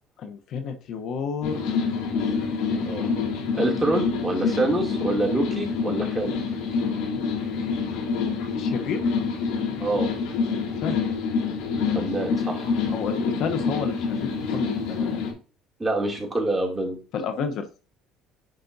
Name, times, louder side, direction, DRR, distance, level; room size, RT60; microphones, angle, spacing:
voice 1, 0.2-1.8 8.5-9.0 10.8-11.0 12.9-15.2 17.1-17.7, left 6 dB, 60° left, 6 dB, 0.9 m, -31 dB
sound 1, 1.4-15.3, left 5 dB, 85° left, 3.5 m, -27 dB
voice 2, 3.6-6.3 9.8-10.1 11.9-12.7 15.8-17.0, right 2 dB, 10° right, -1 dB, 2.6 m, -26 dB
10.5 x 5.0 x 2.7 m, 0.35 s
cardioid pair, 115°, 0 cm